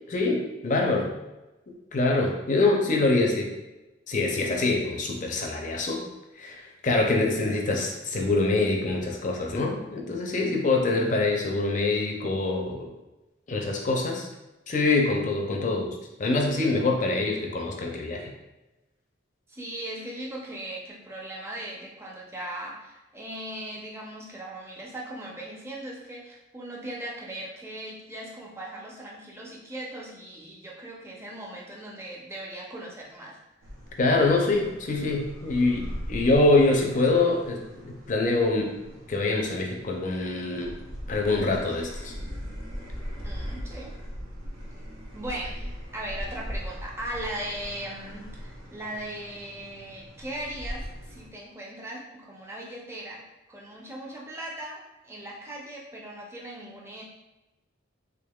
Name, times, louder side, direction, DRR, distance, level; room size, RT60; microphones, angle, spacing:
voice 1, 0.1-1.1 1.9-3.5 4.1-6.0 6.4-12.9 13.5-14.3 14.7-18.3 34.0-38.7 39.1-40.7 41.1-42.1, left 2 dB, 40° left, 1 dB, 0.5 m, -25 dB
voice 2, 19.5-33.4 43.2-43.9 45.1-53.2 53.5-57.0, right 1 dB, 15° right, -3 dB, 0.5 m, -38 dB
sound 1, 33.6-51.3, equal, 90° right, 0.7 m, -40 dB
3.6 x 3.3 x 2.3 m, 1.0 s
head